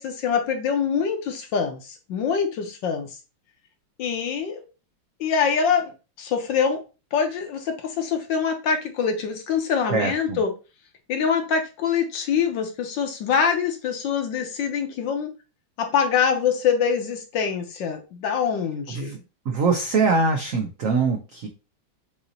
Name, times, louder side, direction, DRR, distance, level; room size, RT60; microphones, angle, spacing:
voice 1, 0.0-3.2 4.0-4.6 5.2-5.9 6.2-6.8 7.1-10.5 11.1-15.3 15.8-19.2, left 6 dB, 65° left, 5 dB, 1.4 m, -24 dB
voice 2, 9.9-10.4 18.9-19.2 19.5-21.5, right 4 dB, 85° right, 3 dB, 0.7 m, -23 dB
6.9 x 2.8 x 2.7 m, 0.31 s
omnidirectional pair, 2.3 m